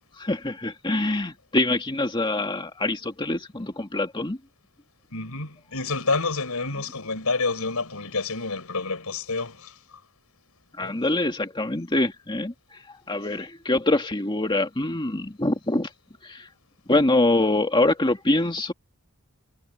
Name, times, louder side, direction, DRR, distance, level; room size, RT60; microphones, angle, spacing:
voice 1, 0.2-4.4 10.8-15.9 16.2-16.5 16.9-18.7, left 2 dB, 20° left, 2.0 m, -24 dB
voice 2, 5.1-9.8 10.8-11.0, left 3 dB, 80° left, 5.2 m, -28 dB
head